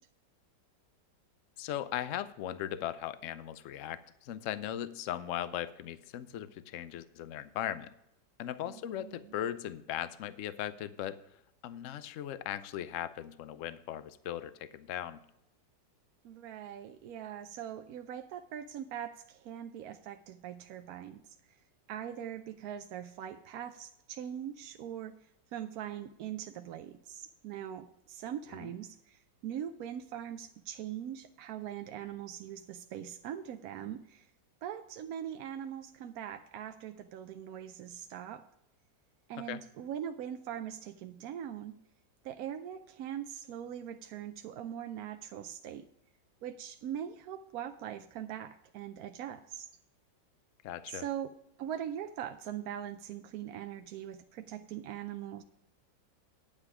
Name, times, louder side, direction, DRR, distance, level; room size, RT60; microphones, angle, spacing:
voice 1, 1.6-7.9 8.4-11.2 11.6-15.2 28.6-28.7 39.5-39.6 50.6-51.0, left 11 dB, 65° left, 14 dB, 0.8 m, -38 dB
voice 2, 8.6-9.3 16.2-21.3 21.9-25.2 25.5-34.3 34.6-38.4 39.3-41.8 42.2-45.9 46.4-49.7 50.9-51.3 51.6-55.4, right 10 dB, 70° right, 7 dB, 0.9 m, -41 dB
9.8 x 8.9 x 4.9 m, 0.82 s
omnidirectional pair, 1.9 m